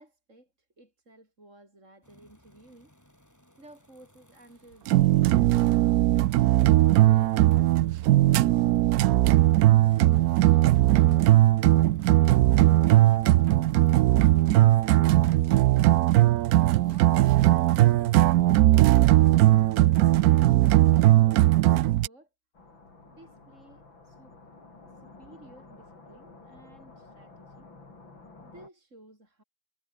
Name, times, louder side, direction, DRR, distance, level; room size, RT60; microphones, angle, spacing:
voice 1, 0.0-2.9 3.6-6.3 6.8-8.9 21.0-22.3 23.0-24.4 24.9-27.7 28.4-29.4, right 1 dB, 35° right, 7.5 m, -55 dB
sound 1, 2.0-21.6, equal, 10° left, 6.8 m, -62 dB
sound 2, 4.9-22.1, right 15 dB, 85° right, 0.8 m, -19 dB
sound 3, 22.5-28.7, left 3 dB, 80° left, 6.1 m, -51 dB
omnidirectional pair, 2.1 m